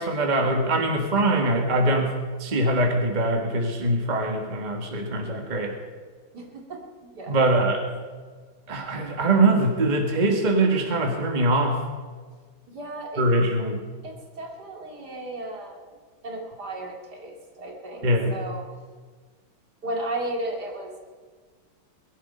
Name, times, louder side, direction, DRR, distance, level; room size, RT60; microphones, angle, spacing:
voice 1, 0.0-2.1 2.4-5.7 7.3-7.8 8.7-11.8 13.2-13.8 18.0-18.3, right 2 dB, 25° right, 3 dB, 1.6 m, -22 dB
voice 2, 6.3-7.5 12.7-13.2 14.0-16.0 16.2-18.6 19.8-21.0, right 1 dB, 55° right, 1 dB, 2.8 m, -35 dB
21.0 x 11.5 x 5.5 m, 1.5 s
omnidirectional pair, 2.2 m